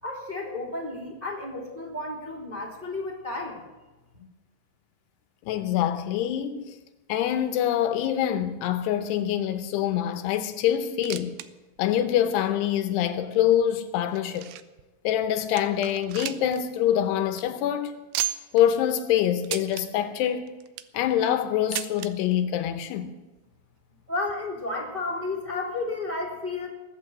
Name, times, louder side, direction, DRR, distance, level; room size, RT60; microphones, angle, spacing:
voice 1, 0.0-3.6 24.1-26.7, left 2 dB, 15° right, 2.3 m, -32 dB
voice 2, 5.4-6.8 7.1-11.4 11.8-14.5 15.0-17.9 18.5-20.5 20.9-23.1, left 10 dB, 80° left, 2.8 m, -25 dB
sound 1, 10.8-11.5 11.8-11.9 12.5-12.6 13.4-14.8 15.2-15.3 15.6-16.6 16.9-17.0 17.3-17.4 18.1-18.6 19.4-19.9 20.5-21.0 21.7-22.1 23.1-23.2 23.4-23.5 24.3-24.4, right 14 dB, 80° right, 2.5 m, -33 dB
20.0 x 8.4 x 7.7 m
omnidirectional pair, 4.9 m